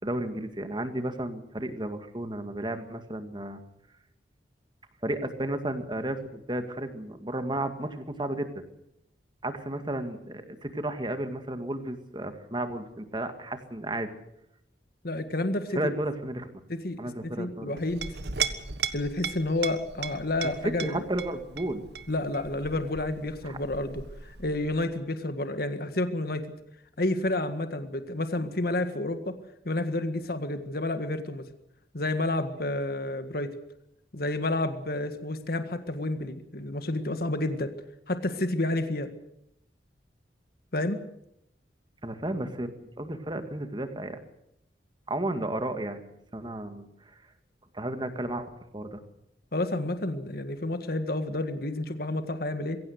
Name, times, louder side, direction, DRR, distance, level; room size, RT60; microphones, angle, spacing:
voice 1, 0.0-3.6 5.0-8.5 9.4-14.1 15.8-16.5 17.0-17.7 20.8-21.8 23.4-23.6 42.0-44.2 45.1-46.9 47.7-49.0, right 1 dB, 25° right, 8 dB, 2.0 m, -33 dB
voice 2, 15.0-15.8 16.7-18.1 18.9-21.0 22.1-26.4 27.0-29.3 29.6-31.4 31.9-33.5 34.1-37.7 38.1-39.1 40.7-41.0 49.5-52.8, left 2 dB, 55° left, 9 dB, 1.7 m, -30 dB
Chink clink, 17.8-24.9, right 7 dB, 70° right, 1.4 m, -37 dB
22.5 x 16.5 x 8.1 m, 0.79 s
head